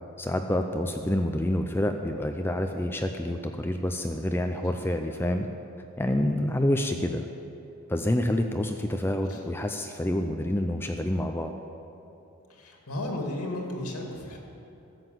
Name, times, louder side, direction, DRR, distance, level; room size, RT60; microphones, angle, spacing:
voice 1, 0.2-5.5 6.0-7.3 7.9-11.5, left 1 dB, 10° left, 5 dB, 0.4 m, -27 dB
voice 2, 12.5-14.4, left 1 dB, 90° left, 0 dB, 2.4 m, -34 dB
13.5 x 7.9 x 7.9 m, 3.0 s
head